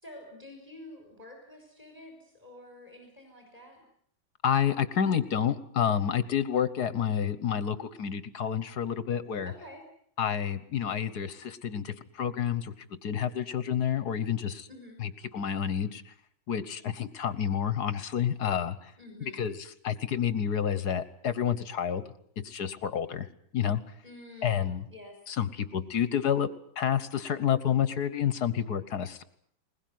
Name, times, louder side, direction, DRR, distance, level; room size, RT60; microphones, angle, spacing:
voice 1, 0.0-3.8 9.4-9.8 14.7-15.0 19.0-19.4 24.0-25.2, left 1 dB, 20° right, 2 dB, 6.0 m, -49 dB
voice 2, 4.4-9.5 10.2-14.7 15.0-16.1 16.5-18.9 19.3-22.0 22.4-23.3 23.5-23.8 24.4-24.8 25.3-26.5 26.8-29.2, left 8 dB, 55° left, 14 dB, 1.6 m, -29 dB
21.5 x 21.0 x 9.4 m, 0.65 s
omnidirectional pair, 2.1 m